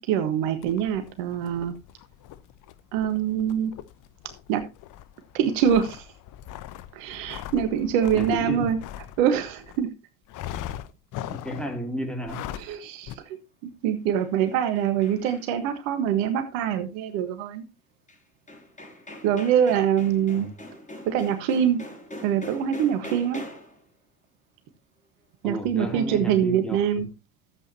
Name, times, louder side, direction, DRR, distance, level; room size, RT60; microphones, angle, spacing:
voice 1, 0.0-1.7 2.9-3.7 4.5-4.6 5.3-6.1 6.9-8.8 9.2-9.9 12.6-13.4 13.6-17.6 19.2-20.5 21.0-21.8 22.2-23.4 25.4-27.1, right 9 dB, 65° right, 1.5 m, -24 dB
sound 1, 0.6-9.8 10.3-11.8 12.2-12.8 13.1-13.2, left 12 dB, 50° left, 0.9 m, -40 dB
voice 2, 8.2-8.8 11.3-12.5 20.4-20.5 25.4-26.8, equal, ahead, 2.8 m, -32 dB
sound 2, 13.9-15.7 18.1-18.2 18.5-23.8, left 1 dB, 20° left, 5.7 m, -42 dB
14.0 x 8.2 x 2.9 m
hypercardioid pair, 70°, 41 cm